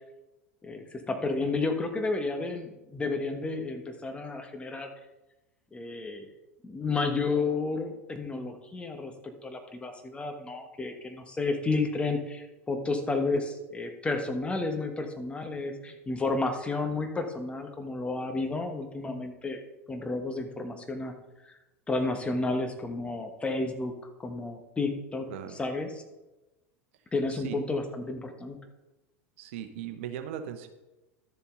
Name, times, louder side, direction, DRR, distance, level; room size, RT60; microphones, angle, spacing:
voice 1, 0.6-4.9 5.7-6.3 6.6-19.6 19.9-21.1 21.4-21.6 21.9-23.9 24.2-25.3 25.6-26.0 27.1-28.6, left 3 dB, 15° left, 6 dB, 1.4 m, -31 dB
voice 2, 29.4-30.7, right 9 dB, 60° right, 8 dB, 1.1 m, -38 dB
12.5 x 7.0 x 3.9 m, 1.0 s
figure-of-eight pair, 80°, 8 cm